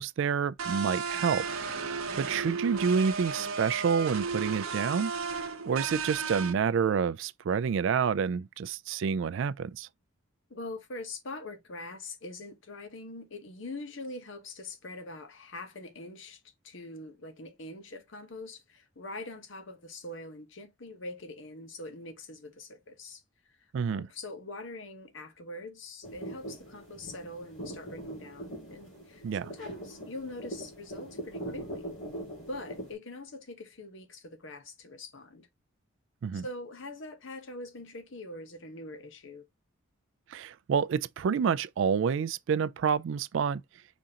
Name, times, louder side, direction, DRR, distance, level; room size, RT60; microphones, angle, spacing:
voice 1, 0.0-1.5 2.2-5.1 5.7-9.9 23.7-24.1 29.2-29.5 36.2-36.5 40.3-43.6, right 6 dB, 60° right, 0.3 m, -28 dB
sound 1, 0.6-6.5, right 5 dB, 85° right, 0.8 m, -34 dB
voice 2, 10.5-23.2 23.9-31.9 32.5-35.5 36.3-39.5, left 2 dB, 60° left, 0.9 m, -43 dB
sound 2, 26.0-32.9, right 1 dB, 85° left, 2.9 m, -42 dB
5.2 x 3.6 x 2.8 m
head